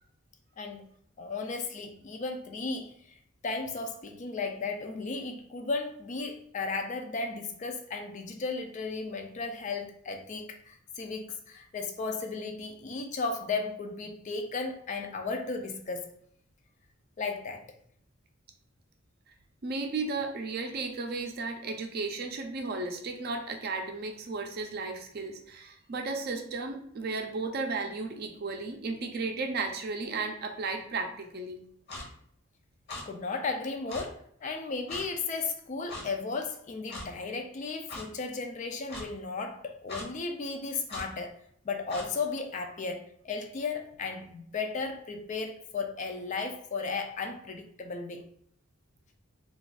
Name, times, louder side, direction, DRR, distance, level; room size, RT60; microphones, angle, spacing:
voice 1, 1.2-3.2 3.4-16.1 17.2-17.6 33.0-41.4 41.6-48.2, left 4 dB, 35° left, 4 dB, 0.3 m, -35 dB
voice 2, 19.6-31.6, right 3 dB, 50° right, 4 dB, 0.5 m, -34 dB
Clock, 31.9-32.1 32.9-33.0 33.9-34.0 34.9-35.1 35.9-36.1 36.9-37.1 37.9-38.0 38.9-39.1 39.9-40.1 40.9-41.1 41.9-42.1, left 2 dB, 50° left, 0.9 m, -39 dB
2.3 x 2.3 x 4.0 m, 0.68 s
head